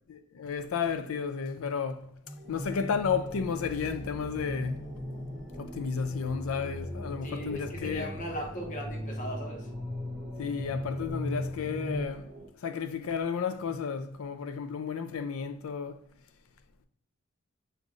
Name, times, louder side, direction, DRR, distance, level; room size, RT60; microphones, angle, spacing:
voice 1, 0.1-2.1 2.5-4.9 5.6-8.1 10.4-12.3 12.6-16.0, left 6 dB, 80° left, 0.4 m, -32 dB
sound 1, 2.3-12.1, left 1 dB, ahead, 0.6 m, -39 dB
sound 2, 2.4-12.5, right 1 dB, 60° right, 0.9 m, -50 dB
voice 2, 7.2-9.7, equal, 40° left, 0.8 m, -38 dB
6.3 x 2.6 x 2.4 m
head